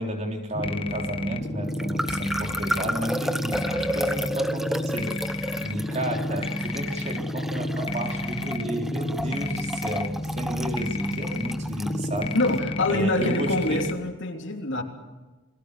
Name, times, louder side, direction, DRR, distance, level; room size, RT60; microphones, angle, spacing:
voice 1, 0.0-5.1 5.6-12.4 12.9-13.9, right 1 dB, 30° right, 3 dB, 3.8 m, -32 dB
sound 1, 0.5-13.9, left 1 dB, 25° left, 1.4 m, -31 dB
sound 2, 1.7-12.5, equal, ahead, 1.0 m, -32 dB
voice 2, 12.3-14.8, left 2 dB, 55° left, 3 dB, 3.4 m, -25 dB
30.0 x 22.0 x 6.9 m, 1.2 s
head